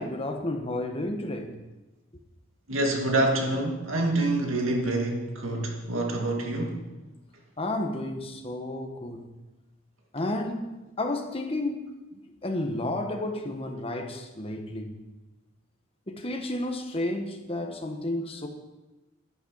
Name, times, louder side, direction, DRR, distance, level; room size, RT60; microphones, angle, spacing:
voice 1, 0.0-1.6 7.6-9.3 10.1-11.9 12.4-15.0 16.1-18.5, left 1 dB, 30° left, 4 dB, 1.4 m, -31 dB
voice 2, 2.7-6.8, right 2 dB, 80° right, 2 dB, 2.3 m, -26 dB
11.5 x 11.0 x 5.6 m, 1.1 s
head